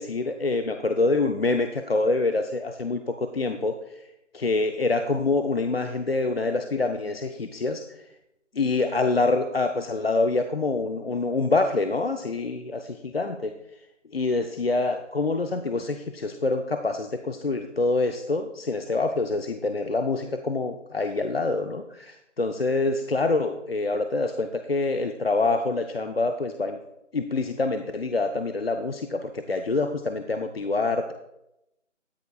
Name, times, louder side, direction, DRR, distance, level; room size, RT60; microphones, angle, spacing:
voice 1, 0.0-4.1 4.3-8.0 8.5-13.5 14.1-26.8 27.1-31.1, left 3 dB, 50° left, 7 dB, 0.6 m, -26 dB
13.0 x 10.0 x 2.4 m, 0.87 s
figure-of-eight pair, 155°, 38 cm